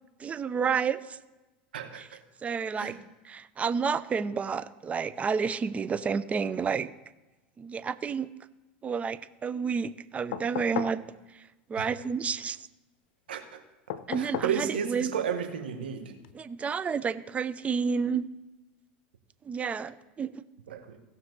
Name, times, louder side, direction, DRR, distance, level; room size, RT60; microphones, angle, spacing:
voice 1, 0.2-1.2 2.0-2.1 2.4-2.9 3.2-6.9 7.6-8.3 8.8-11.0 11.3-11.4 11.7-12.7 14.1-15.1 16.3-18.3 19.4-20.4, right 6 dB, 25° right, 15 dB, 0.6 m, -30 dB
voice 2, 1.7-2.2 2.8-3.0 11.8-11.9 13.3-13.6 14.2-16.1 20.7-21.0, right 7 dB, 90° right, 6 dB, 1.4 m, -33 dB
sound 1, 10.3-11.0 13.9-14.6 16.2-16.3, left 11 dB, 75° left, 0.6 m, -35 dB
17.0 x 6.0 x 4.0 m, 1.1 s
hypercardioid pair, 95°, 5 cm